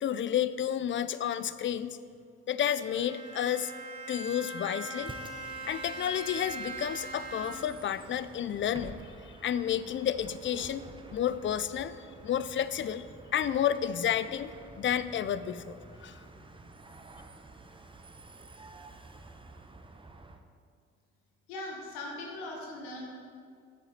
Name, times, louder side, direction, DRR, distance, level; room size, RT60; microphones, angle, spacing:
voice 1, 0.0-2.0 2.5-3.7 4.1-5.1 5.6-10.8 11.1-12.0 12.2-13.1 13.3-14.5 14.8-16.2, left 9 dB, 35° left, 15 dB, 0.4 m, -31 dB
Bowed string instrument, 2.8-7.9, right 2 dB, 45° right, 1.3 m, -41 dB
Bus, 5.0-20.4, right 3 dB, 15° right, 0.7 m, -50 dB
voice 2, 21.5-23.1, left 2 dB, 85° left, -1 dB, 1.3 m, -40 dB
8.3 x 6.7 x 4.3 m, 2.2 s
hypercardioid pair, 55°, 34 cm